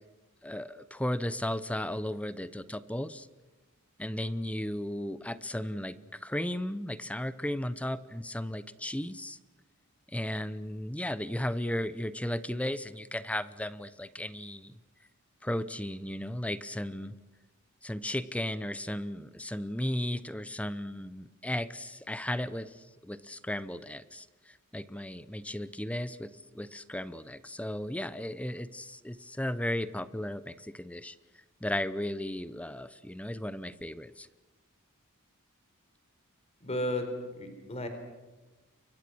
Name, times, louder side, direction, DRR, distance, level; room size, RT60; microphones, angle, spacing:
voice 1, 0.4-3.3 4.0-9.4 10.1-14.7 15.4-17.1 17.8-31.1 31.6-34.3, left 1 dB, 5° left, 15 dB, 0.8 m, -35 dB
voice 2, 36.6-37.1 37.4-37.9, left 1 dB, 30° left, 6 dB, 4.2 m, -33 dB
29.5 x 24.0 x 6.3 m, 1.2 s
head